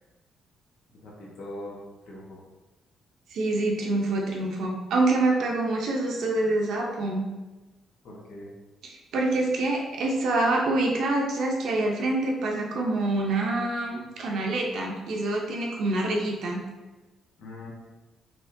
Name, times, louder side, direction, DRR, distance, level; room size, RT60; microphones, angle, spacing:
voice 1, 1.0-1.8 2.1-2.4 8.0-8.5 17.4-17.7, left 1 dB, 70° left, -4 dB, 1.1 m, -41 dB
voice 2, 3.3-7.3 9.1-16.6, right 2 dB, 75° right, 0 dB, 0.6 m, -26 dB
3.5 x 3.0 x 2.6 m, 1.1 s
cardioid pair, 90°, 0 cm